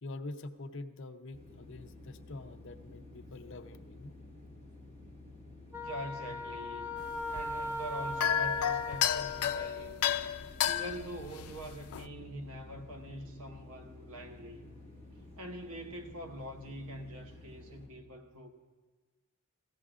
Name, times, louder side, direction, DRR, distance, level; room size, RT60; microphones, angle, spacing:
voice 1, 0.0-4.1, left 2 dB, 60° left, 0.7 m, -45 dB
sound 1, 1.3-17.9, left 2 dB, 40° right, 2.9 m, -52 dB
Wind instrument woodwind instrument, 5.7-9.9, left 2 dB, 10° right, 0.5 m, -39 dB
voice 2, 5.8-7.0 7.3-10.2 10.6-14.8 15.4-18.5, equal, 85° right, 1.1 m, -44 dB
sound 2, 7.0-12.1, left 9 dB, 90° left, 0.4 m, -33 dB
19.0 x 15.5 x 2.5 m
head